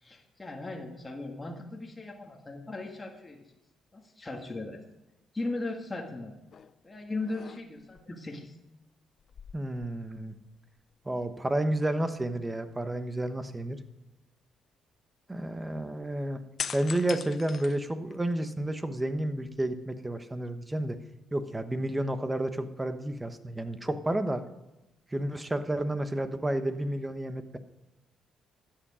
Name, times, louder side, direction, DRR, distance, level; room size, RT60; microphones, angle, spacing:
voice 1, 0.0-3.5 3.9-4.8 5.3-6.4 6.8-8.5, left 2 dB, 20° left, 0 dB, 1.8 m, -38 dB
sound 1, 6.5-6.8 7.2-8.0 9.2-10.5 10.8-10.9 16.6-18.4 18.9-19.8, left 7 dB, 55° left, 0.4 m, -41 dB
voice 2, 9.5-10.3 11.0-13.8 15.3-16.4 16.7-21.0 21.3-24.4 25.1-27.6, right 1 dB, 15° right, 9 dB, 1.1 m, -31 dB
13.0 x 8.9 x 5.0 m, 0.99 s
cardioid pair, 90°, 0 cm